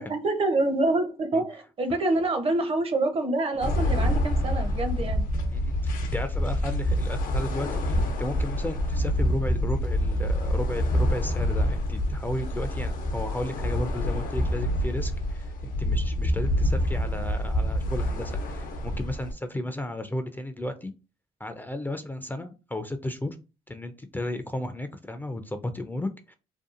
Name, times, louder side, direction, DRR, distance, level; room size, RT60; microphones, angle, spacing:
voice 1, 0.0-5.3, right 2 dB, 40° right, 0.6 m, -26 dB
sound 1, 3.6-19.3, equal, 70° left, 0.6 m, -27 dB
voice 2, 5.5-20.9 21.4-23.4 23.7-26.3, left 1 dB, 15° left, 0.3 m, -34 dB
2.6 x 2.3 x 2.4 m
supercardioid pair, 60°, 15 cm